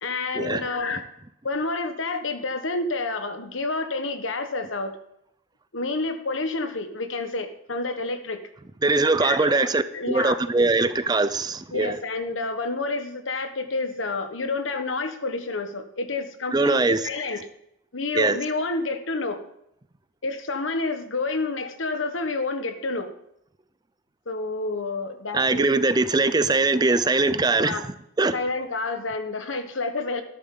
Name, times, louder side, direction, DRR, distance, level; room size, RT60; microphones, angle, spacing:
voice 1, 0.0-1.0 1.4-5.0 5.7-8.4 9.2-10.4 11.7-17.5 17.9-19.4 20.2-23.1 24.3-25.7 27.6-27.8 28.3-30.2, left 3 dB, 80° left, 1.3 m, -29 dB
voice 2, 8.8-12.0 16.5-17.0 18.1-18.4 25.3-27.9 28.2-28.4, right 3 dB, 20° right, 0.5 m, -21 dB
12.5 x 10.5 x 3.8 m
head